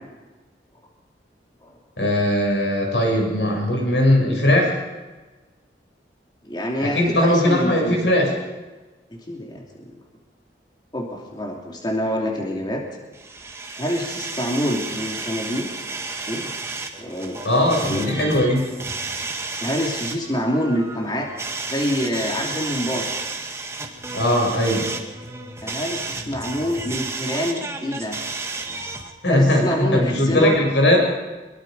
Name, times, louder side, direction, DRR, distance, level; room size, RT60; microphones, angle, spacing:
voice 1, 2.0-4.7 6.8-8.3 17.4-18.6 24.1-24.9 29.2-31.0, left 1 dB, 90° left, 0 dB, 7.6 m, -19 dB
voice 2, 6.4-8.1 9.3-9.9 10.9-12.8 13.8-15.7 16.3-16.5 17.0-17.4 17.8-18.2 19.6-21.3 21.6-23.1 25.6-28.2 29.3-30.6, equal, 25° left, 0 dB, 2.8 m, -26 dB
sound 1, 13.1-29.1, right 3 dB, 15° right, 1.9 m, -32 dB
23.5 x 22.5 x 5.4 m, 1.2 s
head